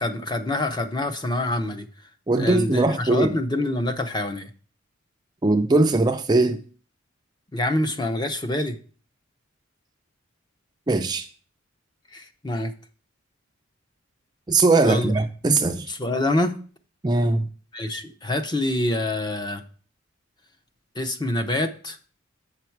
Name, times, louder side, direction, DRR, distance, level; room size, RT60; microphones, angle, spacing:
voice 1, 0.0-1.9 2.3-4.5 7.5-8.8 12.1-12.7 14.8-15.1 15.9-16.6 17.7-19.6 21.0-22.0, left 1 dB, 20° left, 0.7 m, -26 dB
voice 2, 2.3-3.3 5.4-6.6 10.9-11.3 14.5-15.9 17.0-17.5, right 2 dB, 20° right, 0.4 m, -20 dB
7.9 x 5.9 x 4.6 m
head